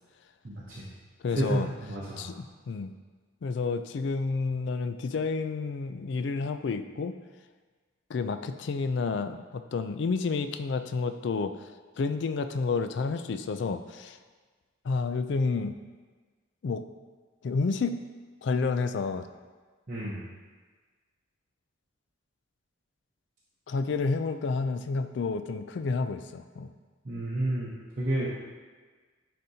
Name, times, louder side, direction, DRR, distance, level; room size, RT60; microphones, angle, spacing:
voice 1, 0.4-0.8 1.3-2.3 19.9-20.2 27.0-28.3, right 1 dB, 40° right, -7 dB, 0.8 m, -31 dB
voice 2, 1.2-1.7 2.2-2.9 3.4-7.2 8.1-11.7 12.0-14.2 14.8-15.8 16.6-16.8 17.4-18.0 18.4-19.3 23.7-26.7, left 4 dB, 55° left, 9 dB, 0.3 m, -30 dB
9.7 x 4.3 x 2.7 m, 1.4 s
head